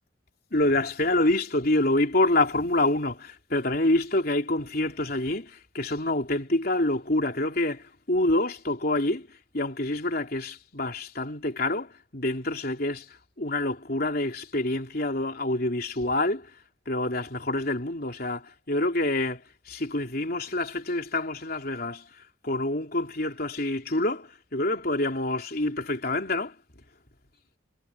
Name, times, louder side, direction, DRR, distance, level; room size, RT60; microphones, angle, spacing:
voice 1, 0.5-9.3 9.5-13.0 13.4-16.5 16.9-22.0 22.4-26.5, left 2 dB, 50° left, 3.5 m, -27 dB
head